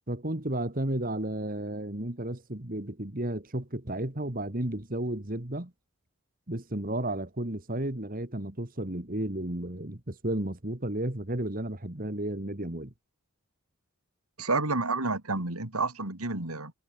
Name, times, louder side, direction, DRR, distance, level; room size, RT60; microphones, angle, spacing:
voice 1, 0.1-5.7 6.5-12.9, right 1 dB, 40° right, 2.1 m, -33 dB
voice 2, 14.4-16.7, right 3 dB, 85° right, 3.9 m, -29 dB
head